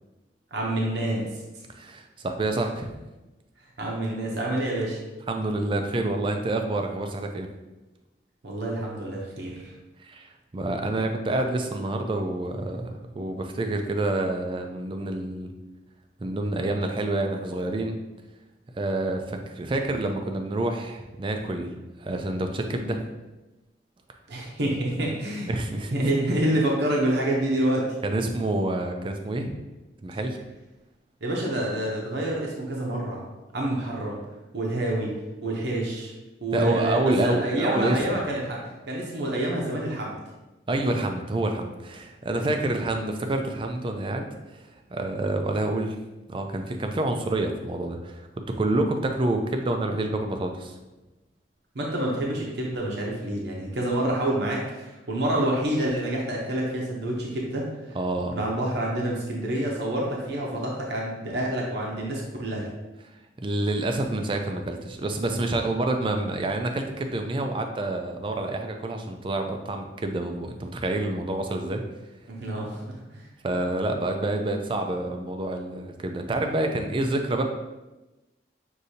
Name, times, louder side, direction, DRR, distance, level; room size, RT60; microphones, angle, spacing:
voice 1, 0.5-1.3 3.8-5.0 8.4-9.7 24.3-25.5 25.9-27.9 31.2-33.2 33.5-34.2 34.5-35.1 35.4-36.1 36.4-38.6 38.9-40.2 42.4-42.6 51.7-58.0 58.3-62.7 72.3-73.2, right 1 dB, 65° right, -2 dB, 0.7 m, -27 dB
voice 2, 1.7-2.9 5.3-7.5 10.0-15.5 16.2-18.0 18.8-21.7 22.0-23.0 25.5-25.9 28.0-29.6 30.0-30.4 36.5-38.2 40.7-46.0 46.3-48.3 48.6-50.8 57.9-58.4 63.4-71.8 73.4-77.4, right 2 dB, 30° right, 5 dB, 0.4 m, -28 dB
6.3 x 2.7 x 2.7 m, 1.1 s
head